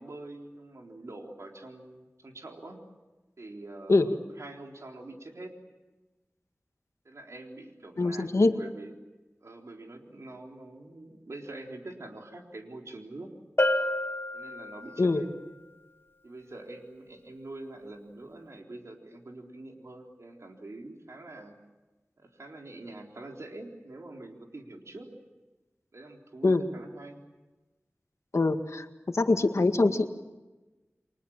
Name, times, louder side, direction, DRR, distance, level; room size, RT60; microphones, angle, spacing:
voice 1, 0.0-2.8 3.4-5.5 7.0-8.9 9.4-13.3 14.3-15.3 16.2-21.6 22.2-25.1 25.9-27.2, right 2 dB, 80° right, 1 dB, 4.0 m, -45 dB
voice 2, 8.0-8.6 15.0-15.2 26.4-26.6 28.3-28.9 29.1-30.1, left 3 dB, 80° left, 6 dB, 1.9 m, -23 dB
Bell, 13.6-15.2, left 1 dB, 50° left, 2.5 m, -29 dB
30.0 x 24.0 x 7.4 m, 1.1 s
wide cardioid pair, 50°, 5 cm